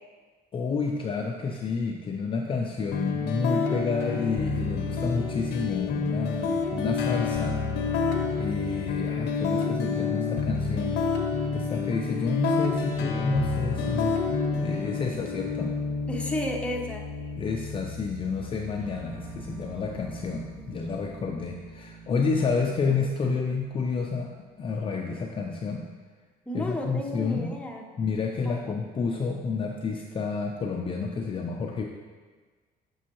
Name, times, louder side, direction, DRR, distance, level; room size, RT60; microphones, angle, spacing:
voice 1, 0.5-7.6 8.4-11.0 11.5-14.2 14.6-15.7 17.4-24.3 24.6-25.9 26.5-27.5 28.0-31.9, left 4 dB, 30° left, 1 dB, 0.5 m, -30 dB
sound 1, 2.9-20.9, left 4 dB, 80° left, 0.7 m, -29 dB
voice 2, 16.1-17.0 26.5-27.8 28.5-28.8, left 1 dB, 5° left, -1 dB, 0.8 m, -32 dB
sound 2, 18.8-24.8, right 4 dB, 45° right, 1.9 m, -47 dB
7.2 x 5.4 x 2.9 m, 1.4 s
cardioid pair, 110°, 17 cm